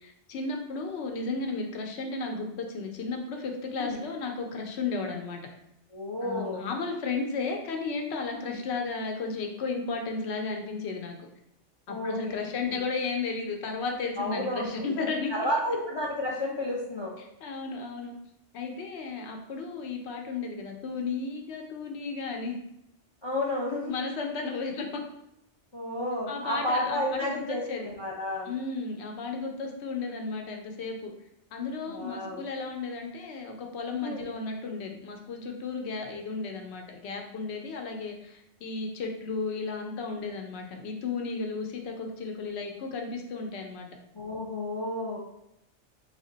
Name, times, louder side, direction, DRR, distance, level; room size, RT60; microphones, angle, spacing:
voice 1, 0.0-5.4 6.2-11.2 11.9-15.3 17.2-18.1 18.5-22.6 23.9-25.0 26.3-27.9 28.5-31.1 31.5-43.9, left 4 dB, 70° left, 3 dB, 0.9 m, -34 dB
voice 2, 5.9-6.6 8.5-8.6 11.9-12.8 14.2-17.1 23.2-23.9 25.7-28.5 31.9-32.4 34.0-34.3 44.1-45.2, left 1 dB, 50° left, -3 dB, 0.3 m, -32 dB
3.4 x 2.1 x 3.8 m, 0.83 s
omnidirectional pair, 1.2 m